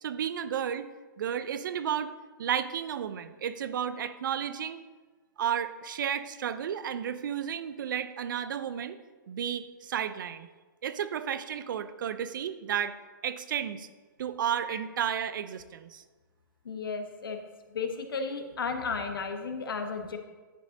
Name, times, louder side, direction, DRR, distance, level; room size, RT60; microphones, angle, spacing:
voice 1, 0.0-0.9 1.2-2.1 2.4-4.8 5.4-9.0 9.3-10.5 10.8-13.0 13.2-13.9 14.2-16.0, right 9 dB, 65° right, 13 dB, 0.6 m, -32 dB
voice 2, 16.6-17.4 17.7-20.2, left 5 dB, 80° left, 6 dB, 1.1 m, -34 dB
10.0 x 5.2 x 3.9 m, 1.3 s
hypercardioid pair, 135°, 12 cm